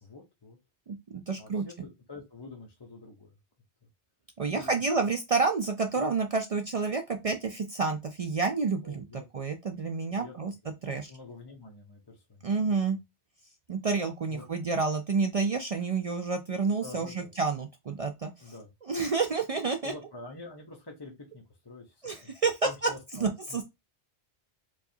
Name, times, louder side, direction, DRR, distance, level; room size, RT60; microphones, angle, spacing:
voice 1, 0.0-0.6 1.4-3.3 4.5-4.7 6.0-6.1 8.8-9.3 10.1-10.5 10.9-12.5 14.3-14.4 16.8-17.3 18.4-18.7 19.8-22.3 22.6-23.6, left 3 dB, 25° left, 0.7 m, -47 dB
voice 2, 0.9-1.6 4.4-10.5 10.8-11.1 12.4-13.0 13.7-18.3 18.9-19.9 22.0-22.9 23.2-23.6, right 4 dB, 60° right, 0.3 m, -29 dB
4.6 x 2.4 x 2.7 m
omnidirectional pair, 1.2 m